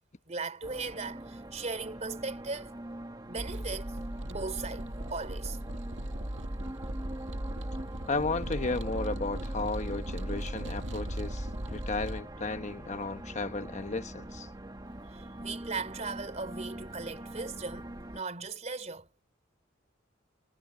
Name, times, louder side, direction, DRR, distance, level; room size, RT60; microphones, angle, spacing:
voice 1, 0.3-2.7 3.3-3.9 4.3-5.6 15.1-19.1, right 4 dB, 35° right, 3.3 m, -38 dB
sound 1, 0.6-18.2, right 1 dB, 20° right, 1.5 m, -44 dB
sound 2, 3.4-12.2, right 1 dB, 70° right, 2.4 m, -37 dB
voice 2, 8.1-14.5, left 3 dB, 40° left, 1.1 m, -34 dB
head